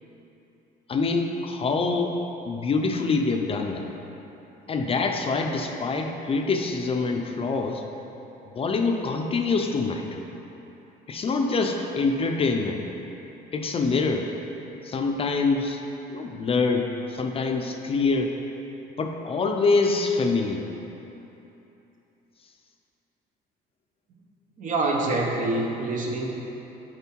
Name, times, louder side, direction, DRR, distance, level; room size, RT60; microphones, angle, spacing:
voice 1, 0.9-2.1 2.5-3.8 4.7-7.8 8.5-10.2 11.1-12.8 13.5-14.3 14.8-15.8 16.1-18.3 19.0-20.7, left 4 dB, 35° left, 3 dB, 0.5 m, -25 dB
voice 2, 24.6-26.3, right 2 dB, 50° right, 0 dB, 1.0 m, -26 dB
6.9 x 5.0 x 4.5 m, 3.0 s
cardioid pair, 110°, 17 cm